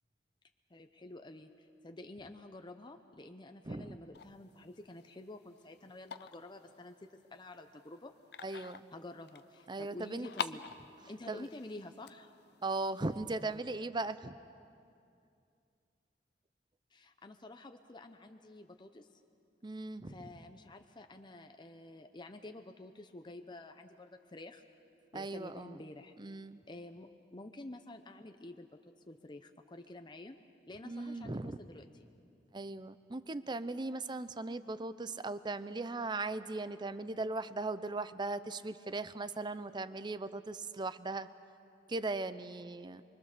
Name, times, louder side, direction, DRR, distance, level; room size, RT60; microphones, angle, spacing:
voice 1, 0.7-8.1 8.9-10.6 11.1-12.3 16.9-19.2 20.1-24.6 25.1-26.1 26.7-28.7 29.1-30.4 30.7-32.1, left 2 dB, 25° left, 6 dB, 0.8 m, -50 dB
voice 2, 3.7-4.0 8.4-8.9 9.7-10.3 11.3-11.5 12.6-14.4 19.6-20.1 25.1-25.8 26.2-26.6 30.8-31.6 32.5-41.3 41.9-43.0, right 2 dB, 25° right, 14 dB, 0.6 m, -38 dB
sound 1, 4.1-13.5, left 7 dB, 65° left, 0.6 m, -48 dB
24.0 x 24.0 x 6.7 m, 2.5 s
head